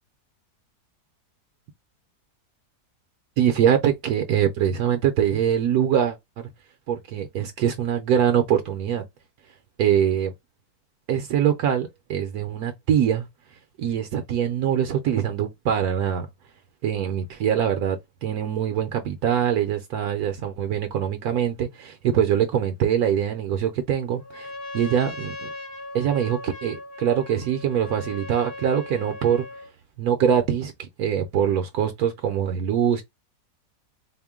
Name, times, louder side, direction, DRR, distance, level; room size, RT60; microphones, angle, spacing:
voice 1, 3.4-6.5 6.9-9.0 9.8-10.3 11.1-13.3 13.8-16.3 16.8-25.5 25.9-29.5 30.0-33.0, right 9 dB, 70° right, 1.1 m, -23 dB
Trumpet, 24.2-29.7, left 2 dB, 70° left, 2.1 m, -38 dB
4.3 x 2.2 x 3.6 m
omnidirectional pair, 1.7 m